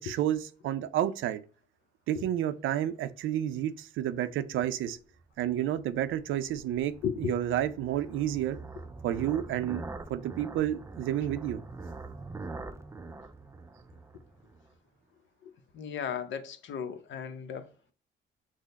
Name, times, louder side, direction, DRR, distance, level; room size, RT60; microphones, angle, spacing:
voice 1, 0.1-1.4 2.1-5.0 5.4-8.6 9.0-9.8 10.1-11.6, right 11 dB, 80° right, 0.5 m, -30 dB
sound 1, 5.2-14.7, right 3 dB, 15° right, 0.3 m, -44 dB
voice 2, 7.0-7.4 15.4-17.7, left 8 dB, 70° left, 0.7 m, -35 dB
6.2 x 2.1 x 4.0 m
cardioid pair, 90°, 20 cm